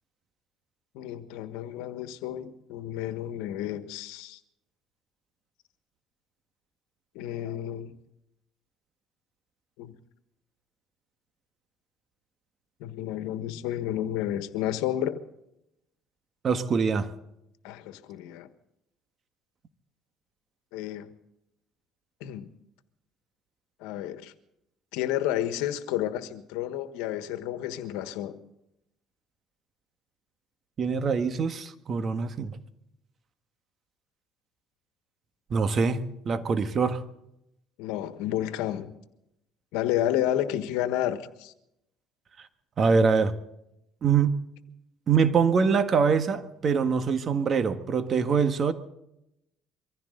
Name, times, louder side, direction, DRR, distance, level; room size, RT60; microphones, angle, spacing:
voice 1, 0.9-4.4 7.1-7.9 9.8-9.9 12.8-15.2 17.6-18.5 20.7-21.1 22.2-22.5 23.8-24.3 24.9-28.4 37.8-38.9 39.7-41.5, left 12 dB, 90° left, 10 dB, 1.4 m, -31 dB
voice 2, 16.4-17.1 30.8-32.5 35.5-37.0 42.8-43.3 44.0-44.4 45.1-48.7, right 5 dB, 45° right, 9 dB, 1.6 m, -24 dB
24.0 x 15.5 x 3.9 m, 0.83 s
cardioid pair, 95°, 0 cm